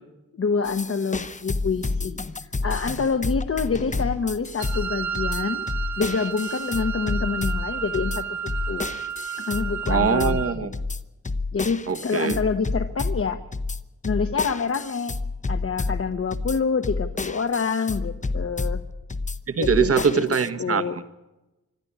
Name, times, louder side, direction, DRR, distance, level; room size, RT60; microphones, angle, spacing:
voice 1, 0.3-5.7 6.0-8.4 8.7-8.9 9.4-10.4 11.5-13.4 14.0-15.2 15.5-18.8 19.6-20.2 20.6-21.0, left 5 dB, 50° left, 7 dB, 1.1 m, -27 dB
sound 1, 0.6-20.5, left 3 dB, 25° left, 0.9 m, -30 dB
Wind instrument woodwind instrument, 4.6-10.6, right 8 dB, 70° right, 1.0 m, -32 dB
voice 2, 9.9-10.7 11.9-12.4 19.5-21.0, right 6 dB, 50° right, 10 dB, 1.3 m, -22 dB
26.0 x 12.5 x 10.0 m, 0.99 s
wide cardioid pair, 160°, 29 cm